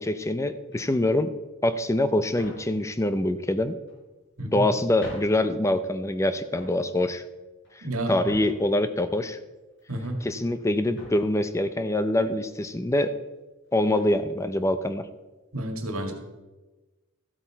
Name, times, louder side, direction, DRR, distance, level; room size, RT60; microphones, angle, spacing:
voice 1, 0.0-1.3 1.6-3.8 4.5-7.2 7.8-9.4 10.2-13.2 13.7-15.1, left 1 dB, 15° left, 11 dB, 0.5 m, -25 dB
sound 1, 0.6-1.0 1.7-1.8 2.3-2.7 3.7-4.3 4.7-4.8 5.0-5.4 5.8-6.2 6.5-6.8 7.5-8.7 9.3-10.2 10.5-10.6 10.9-11.3 12.1-12.2 12.5-12.7 14.0-14.2, left 1 dB, 55° left, 4.4 m, -45 dB
voice 2, 7.8-8.1 9.9-10.2 15.5-16.1, right 1 dB, 80° right, 5 dB, 1.9 m, -30 dB
13.5 x 8.2 x 4.5 m, 1.1 s
head